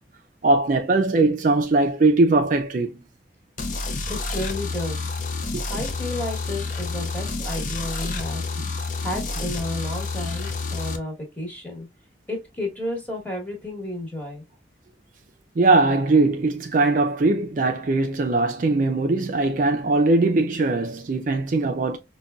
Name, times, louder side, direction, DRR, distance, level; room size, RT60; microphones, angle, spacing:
voice 1, 0.4-3.0 5.5-5.6 8.6-8.7 15.6-22.0, right 3 dB, 45° right, 0.4 m, -20 dB
sound 1, 3.6-11.0, left 3 dB, 45° left, 0.5 m, -29 dB
voice 2, 4.1-5.0 5.7-8.4 9.0-11.9 12.3-14.4, left 1 dB, 10° left, 1.1 m, -32 dB
5.1 x 2.2 x 2.2 m
head